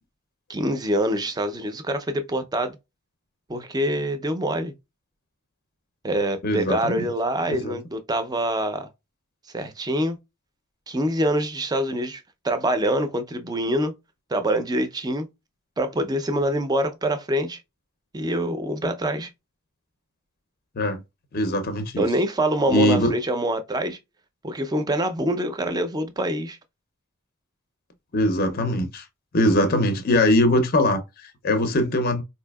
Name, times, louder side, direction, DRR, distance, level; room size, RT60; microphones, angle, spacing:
voice 1, 0.5-2.8 3.5-4.7 6.0-8.9 9.5-10.2 10.9-13.9 14.3-15.3 15.8-17.6 18.1-19.3 22.0-24.0 24.4-26.6, right 1 dB, 20° right, 0.4 m, -25 dB
voice 2, 6.4-7.1 7.5-7.8 20.8-21.0 21.3-22.1 22.7-23.1 28.1-29.0 29.3-32.2, left 1 dB, 45° left, 0.5 m, -22 dB
4.1 x 2.7 x 2.2 m
head